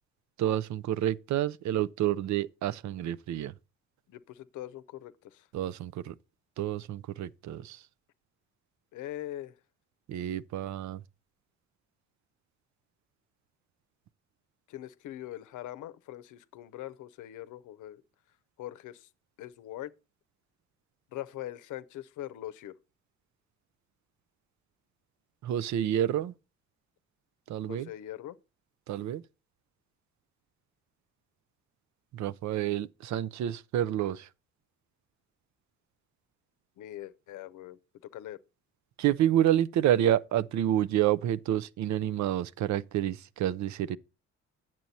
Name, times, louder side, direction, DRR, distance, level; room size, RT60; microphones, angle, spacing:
voice 1, 0.4-3.5 5.5-6.1 6.6-7.8 10.1-11.0 25.4-26.3 27.5-27.9 28.9-29.2 32.1-34.3 39.0-44.0, right 11 dB, 70° right, 0.5 m, -29 dB
voice 2, 4.1-5.5 8.9-9.6 14.7-18.0 18.6-19.1 19.4-19.9 21.1-22.8 27.7-28.4 36.8-37.8 38.1-38.4, left 13 dB, 85° left, 0.7 m, -42 dB
9.2 x 7.5 x 4.1 m
cardioid pair, 90°, 30 cm